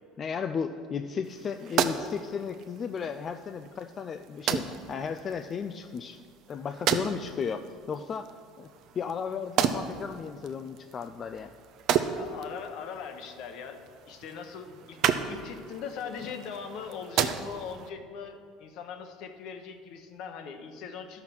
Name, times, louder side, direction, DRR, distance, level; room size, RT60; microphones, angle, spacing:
voice 1, 0.2-6.2 6.5-8.7 9.0-11.5, left 6 dB, 35° left, 8 dB, 0.4 m, -35 dB
sound 1, 1.2-17.9, right 8 dB, 55° right, 0.6 m, -34 dB
voice 2, 12.1-15.0 15.2-21.2, left 6 dB, 60° left, 7 dB, 1.0 m, -40 dB
12.0 x 5.8 x 6.1 m, 2.3 s
supercardioid pair, 115°, 0 cm